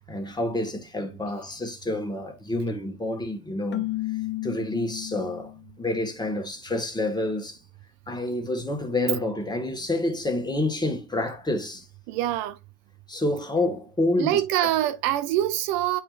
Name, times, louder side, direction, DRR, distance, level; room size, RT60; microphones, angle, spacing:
voice 1, 0.0-3.9 4.4-5.5 5.8-7.6 8.1-11.9 13.1-14.7, left 1 dB, 10° left, 1.6 m, -28 dB
Keyboard (musical), 3.7-5.7, left 18 dB, 30° left, 0.7 m, -32 dB
voice 2, 12.1-12.5 14.2-16.0, right 13 dB, 55° right, 0.7 m, -24 dB
8.7 x 4.7 x 2.5 m
hypercardioid pair, 95°, 39 cm